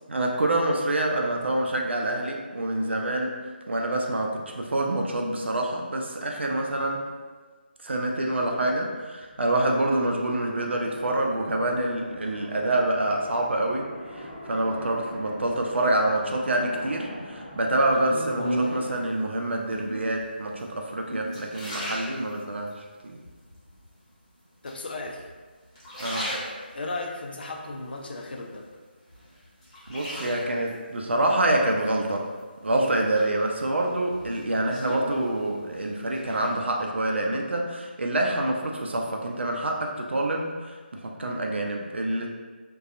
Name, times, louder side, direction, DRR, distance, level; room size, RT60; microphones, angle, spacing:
voice 1, 0.1-3.3 3.7-7.0 7.8-22.8 23.0-23.2 26.0-26.3 29.9-32.3 32.6-42.3, right 1 dB, 80° right, 1 dB, 0.5 m, -26 dB
sound 1, 8.9-17.7, equal, 5° left, 0.7 m, -42 dB
sound 2, 17.9-19.0 19.7-20.2 20.8-22.7 23.2-23.9 24.7-25.3 25.7-27.0 27.5-28.7 29.1-30.7 32.1-32.7 33.1-35.8 36.0-36.5, equal, 35° left, 1.0 m, -35 dB
voice 2, 24.6-25.3 26.7-28.7, left 2 dB, 60° left, 1 dB, 0.4 m, -35 dB
2.7 x 2.2 x 2.5 m, 1.4 s
figure-of-eight pair, 165°, 6 cm